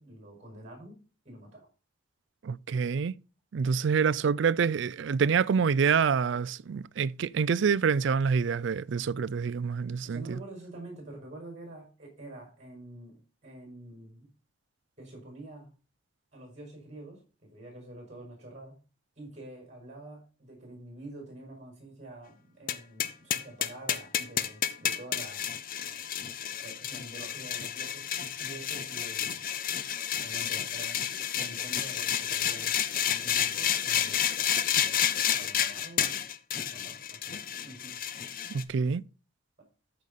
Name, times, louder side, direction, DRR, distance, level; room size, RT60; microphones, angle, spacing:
voice 1, 0.0-1.7 10.0-14.3 15.0-15.7 16.3-18.8 19.2-25.4 26.6-28.1 28.4-29.5 30.2-31.0 31.3-32.8 33.0-34.5 34.7-36.2 36.5-38.0 39.6-39.7, right 1 dB, 35° right, 5.4 m, -47 dB
voice 2, 2.4-3.1 3.5-10.4 38.5-39.0, right 6 dB, 60° right, 0.4 m, -27 dB
sound 1, 22.7-38.6, left 9 dB, 45° left, 0.6 m, -30 dB
13.5 x 5.3 x 4.1 m
head